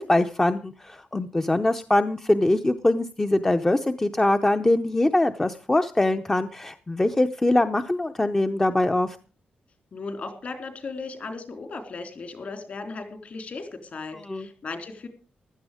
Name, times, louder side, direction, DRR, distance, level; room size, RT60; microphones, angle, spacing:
voice 1, 0.0-9.2 14.2-14.5, left 1 dB, 15° left, 8 dB, 0.7 m, -23 dB
voice 2, 9.9-15.1, left 3 dB, 50° left, 7 dB, 3.5 m, -36 dB
15.5 x 12.5 x 5.0 m, 0.36 s
wide cardioid pair, 140°, 3 cm